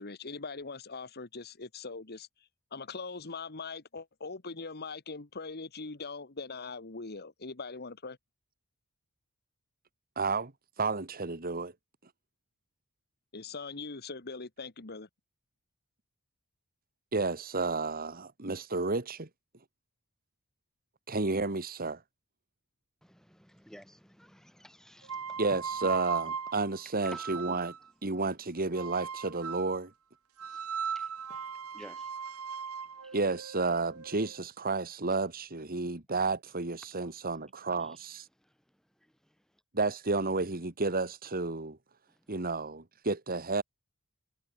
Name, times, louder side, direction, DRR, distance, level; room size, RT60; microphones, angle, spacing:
voice 1, 0.0-8.2 13.3-15.1, left 4 dB, 45° left, 1.6 m, -41 dB
voice 2, 10.2-10.5 10.8-11.7 17.1-19.3 21.1-22.0 25.4-27.7 28.0-29.9 33.1-38.3 39.7-41.8 42.3-43.6, right 3 dB, 40° right, 2.0 m, -31 dB
voice 3, 23.0-25.6 26.8-27.3 30.4-32.1 32.8-33.2 36.8-37.1 37.8-38.0 38.4-39.6 42.1-42.3, equal, ahead, 6.9 m, -55 dB
sound 1, 25.0-27.9 28.8-29.8 30.4-34.4, right 6 dB, 70° right, 1.3 m, -38 dB
head